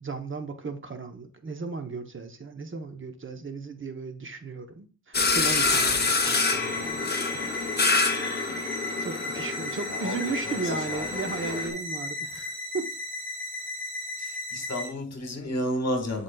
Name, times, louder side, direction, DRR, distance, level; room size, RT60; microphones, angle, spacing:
voice 1, 0.0-7.6 9.0-12.9, right 4 dB, 40° right, 0.8 m, -35 dB
sound 1, 5.1-11.7, left 4 dB, 30° left, 0.8 m, -27 dB
sound 2, 5.2-14.9, left 2 dB, 20° right, 2.4 m, -35 dB
voice 2, 9.9-11.8 14.2-16.2, left 1 dB, 60° left, 1.5 m, -33 dB
10.5 x 4.1 x 2.3 m
wide cardioid pair, 100°, 30 cm